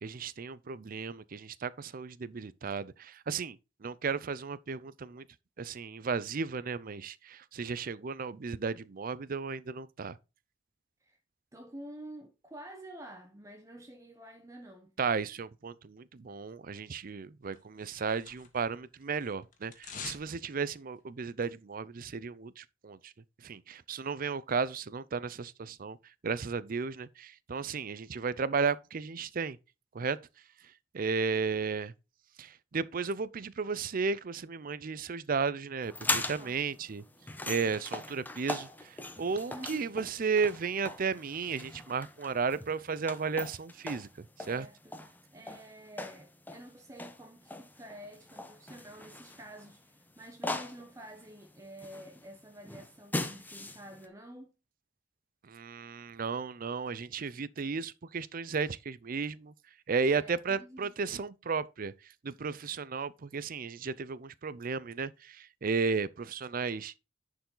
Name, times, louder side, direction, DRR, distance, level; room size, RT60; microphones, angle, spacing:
voice 1, 0.0-5.3 5.6-10.2 15.0-23.1 23.4-26.0 26.2-29.6 29.9-30.2 30.9-31.9 32.4-37.0 37.5-44.7 55.4-59.5 59.9-61.9 62.2-67.0, right 5 dB, 50° right, 0.5 m, -34 dB
voice 2, 11.5-14.9 36.4-36.6 39.5-39.8 44.5-44.9 45.3-54.5 60.0-61.2, right 1 dB, 15° right, 0.9 m, -49 dB
sound 1, 17.5-18.8 19.0-20.3 20.6-20.7, left 6 dB, 45° left, 1.8 m, -45 dB
sound 2, 35.8-54.1, left 2 dB, 10° left, 0.9 m, -40 dB
10.5 x 4.8 x 3.9 m
head